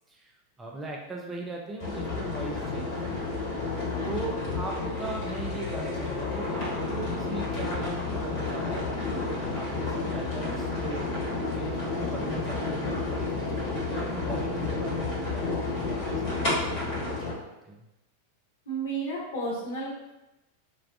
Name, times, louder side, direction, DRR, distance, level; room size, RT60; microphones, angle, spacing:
voice 1, 0.1-3.5 4.0-11.1 11.5-17.8, right 2 dB, 15° right, -1 dB, 0.3 m, -39 dB
sound 1, 1.8-17.3, left 3 dB, 45° left, 1.1 m, -31 dB
voice 2, 18.7-20.1, right 2 dB, 60° left, -7 dB, 1.0 m, -32 dB
2.3 x 2.2 x 2.5 m, 0.98 s
figure-of-eight pair, 90°, 0 cm